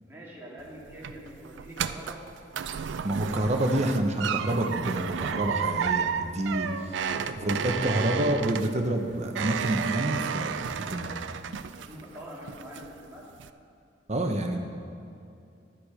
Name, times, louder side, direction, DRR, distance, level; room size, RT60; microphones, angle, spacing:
voice 1, 0.0-2.2 7.0-8.0 10.8-11.2 11.8-13.3, equal, 10° right, -6 dB, 2.3 m, -45 dB
sound 1, 0.6-12.2 12.5-13.0 13.4-13.5, right 7 dB, 70° right, 0.4 m, -32 dB
voice 2, 3.0-7.0 7.3-11.1 14.1-14.6, right 1 dB, 35° right, 4 dB, 0.9 m, -28 dB
11.5 x 9.3 x 4.9 m, 2.5 s
head